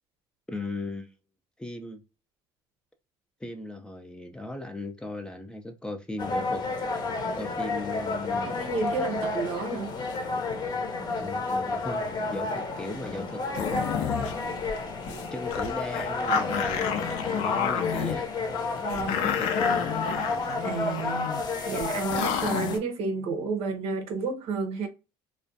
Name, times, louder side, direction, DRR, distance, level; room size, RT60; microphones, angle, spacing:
voice 1, 0.5-1.1 1.6-2.0 3.4-6.6 7.4-8.5 11.2-12.0 12.3-14.4 15.3-18.3 18.9-20.5, left 2 dB, 10° left, 0.4 m, -37 dB
sound 1, 6.2-22.8, left 3 dB, 40° left, 0.7 m, -31 dB
voice 2, 8.4-9.9 15.1-15.2 18.8-19.3 20.6-21.3 21.7-24.9, right 4 dB, 70° right, 0.7 m, -31 dB
sound 2, 13.5-14.3 14.7-14.8 15.0-15.2 15.5-18.2 18.9-21.4 21.8-21.9 22.1-22.8, left 8 dB, 80° left, 0.5 m, -30 dB
2.4 x 2.2 x 2.5 m
cardioid pair, 105°, 11 cm